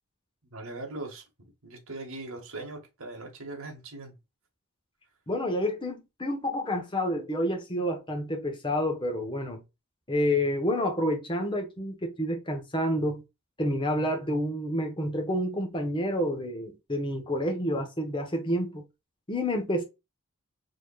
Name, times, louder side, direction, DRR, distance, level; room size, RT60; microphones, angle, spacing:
voice 1, 0.5-4.1, right 2 dB, 65° right, 1.7 m, -40 dB
voice 2, 5.3-9.6 10.1-13.2 13.6-18.8 19.3-19.8, equal, 20° left, 1.0 m, -29 dB
4.8 x 3.1 x 2.3 m
head